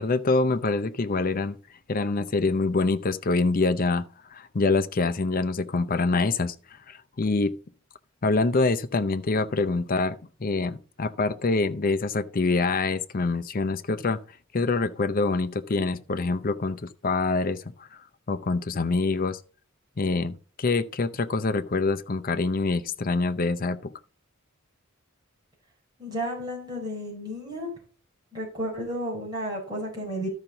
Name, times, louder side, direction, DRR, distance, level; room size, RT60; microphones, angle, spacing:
voice 1, 0.0-1.6 1.9-4.0 4.3-6.5 6.9-7.6 8.2-14.2 14.5-17.6 18.3-19.4 20.0-23.9, left 3 dB, 45° left, 0.6 m, -25 dB
voice 2, 26.0-27.7 28.3-30.3, equal, 20° right, 4.0 m, -32 dB
12.5 x 5.8 x 3.9 m
head